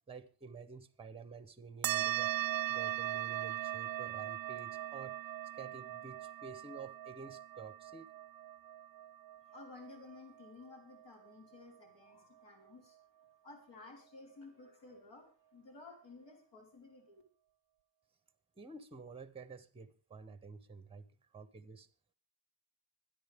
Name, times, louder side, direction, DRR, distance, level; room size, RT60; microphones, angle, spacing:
voice 1, 0.1-2.3 2.7-5.2 5.5-8.1 18.6-21.1 21.3-21.9, right 4 dB, 10° right, 0.9 m, -50 dB
sound 1, 1.8-10.7, right 13 dB, 50° right, 0.7 m, -39 dB
voice 2, 9.5-13.0 13.4-17.2, left 3 dB, 65° left, 5.0 m, -54 dB
25.0 x 10.5 x 3.6 m
wide cardioid pair, 180°, 47 cm